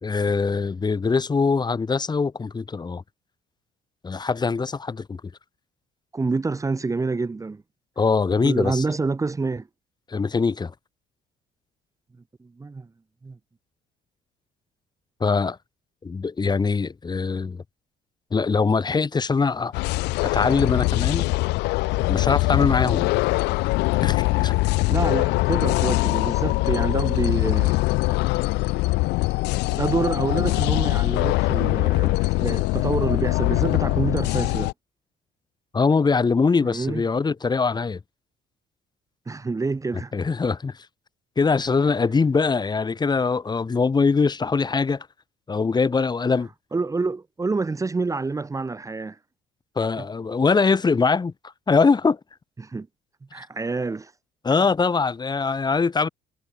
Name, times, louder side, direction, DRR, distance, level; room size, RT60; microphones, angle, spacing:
voice 1, 0.0-3.0 4.0-5.2 8.0-8.8 10.1-10.7 15.2-15.6 16.0-17.6 18.3-19.7 20.2-21.3 22.1-23.1 24.0-24.6 35.7-38.0 40.1-40.9 41.4-45.1 45.5-46.5 49.8-51.3 51.7-52.2 54.4-56.1, left 4 dB, 25° left, 2.3 m, -22 dB
voice 2, 6.1-7.6 8.4-9.7 12.4-12.9 13.2-13.4 24.9-27.8 29.7-34.7 36.6-37.0 39.3-40.1 46.7-49.2 50.0-50.1 52.6-52.9 53.3-54.1, right 3 dB, 20° right, 1.4 m, -27 dB
sound 1, 19.7-34.7, left 22 dB, 85° left, 0.4 m, -22 dB
cardioid pair, 110°, 17 cm